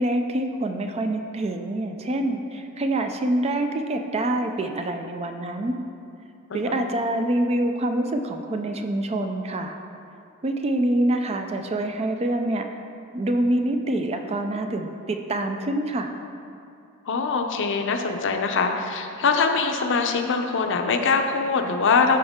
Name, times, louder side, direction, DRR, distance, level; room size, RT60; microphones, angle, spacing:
voice 1, 0.0-5.8 6.5-9.7 10.4-12.7 13.1-16.1, right 1 dB, 30° right, 5 dB, 0.4 m, -26 dB
voice 2, 6.5-6.8 17.1-22.2, left 4 dB, 55° left, 5 dB, 0.6 m, -23 dB
12.5 x 4.4 x 3.6 m, 2.6 s
head